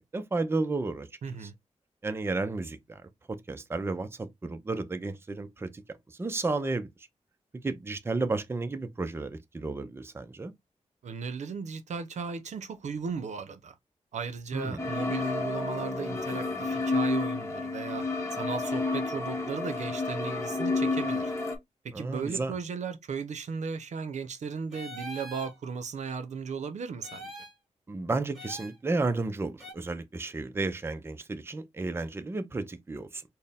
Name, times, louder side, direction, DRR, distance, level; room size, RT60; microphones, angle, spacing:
voice 1, 0.1-1.1 1.4-1.5 2.0-3.0 3.3-5.8 6.2-6.9 7.6-10.5 14.5-14.9 21.9-22.5 27.9-33.2, right 3 dB, 20° right, 0.5 m, -32 dB
voice 2, 1.2-1.5 11.0-13.7 14.1-18.0 18.3-21.3 21.8-27.3, right 5 dB, 75° right, 0.6 m, -36 dB
sound 1, 14.8-21.6, left 3 dB, 25° left, 0.9 m, -30 dB
sound 2, 24.7-25.5 27.0-27.6 28.3-28.8 29.6-29.7, equal, ahead, 1.2 m, -43 dB
4.3 x 2.1 x 3.4 m
wide cardioid pair, 125°, 12 cm